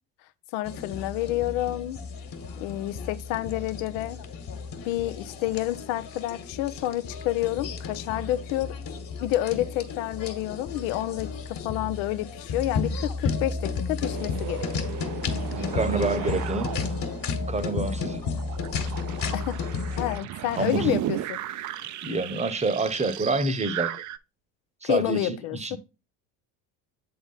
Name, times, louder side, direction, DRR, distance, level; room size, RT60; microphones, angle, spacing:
voice 1, 0.5-2.0 2.6-4.2 4.9-8.7 9.2-14.7 19.3-19.6 20.0-21.4 24.8-25.8, left 14 dB, 70° left, 0.7 m, -29 dB
sound 1, 0.6-20.2, left 4 dB, 45° left, 1.7 m, -33 dB
sound 2, 14.0-24.2, right 12 dB, 40° right, 0.5 m, -35 dB
voice 2, 15.5-16.7 17.5-18.2 20.6-20.9 22.0-24.0 24.8-25.8, right 3 dB, 15° right, 1.0 m, -27 dB
8.0 x 3.9 x 4.0 m
hypercardioid pair, 70°, 46 cm